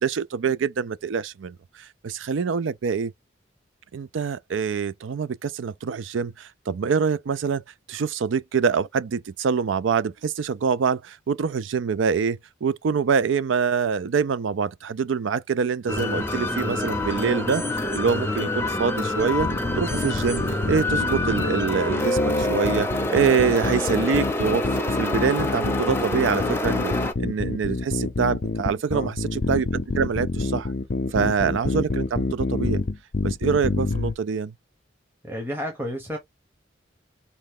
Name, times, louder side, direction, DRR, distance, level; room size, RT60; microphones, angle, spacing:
voice 1, 0.0-3.1 3.9-7.6 7.9-17.6 17.9-19.5 19.8-24.6 24.9-30.7 31.1-32.8 33.2-34.5, right 6 dB, 85° right, 0.4 m, -25 dB
sound 1, 15.9-27.1, left 1 dB, 10° left, 0.7 m, -27 dB
sound 2, 19.4-34.1, left 3 dB, 60° left, 0.5 m, -27 dB
voice 2, 35.2-36.2, equal, 10° right, 1.0 m, -31 dB
4.3 x 3.2 x 3.6 m
head